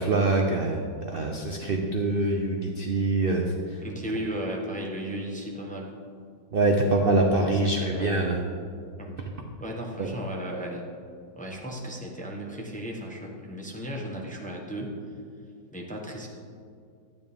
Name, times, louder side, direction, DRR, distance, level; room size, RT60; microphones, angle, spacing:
voice 1, 0.0-3.8 6.5-8.4 10.0-10.1, right 2 dB, 60° right, 1 dB, 0.5 m, -24 dB
voice 2, 3.8-5.9 7.4-8.2 9.0-9.2 9.6-10.8 11.4-15.0 15.7-16.3, equal, 5° left, -1 dB, 0.8 m, -35 dB
12.0 x 9.5 x 3.6 m, 2.3 s
omnidirectional pair, 2.0 m